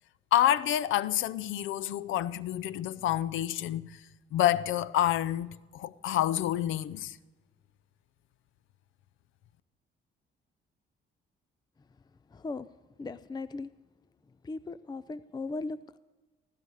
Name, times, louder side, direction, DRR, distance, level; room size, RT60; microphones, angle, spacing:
voice 1, 0.3-4.0 4.3-7.2, left 12 dB, 80° left, 0.6 m, -28 dB
voice 2, 12.3-12.7 13.0-13.7 14.3-16.0, left 3 dB, 20° left, 0.5 m, -38 dB
16.5 x 16.0 x 4.9 m
cardioid pair, 90°, 20 cm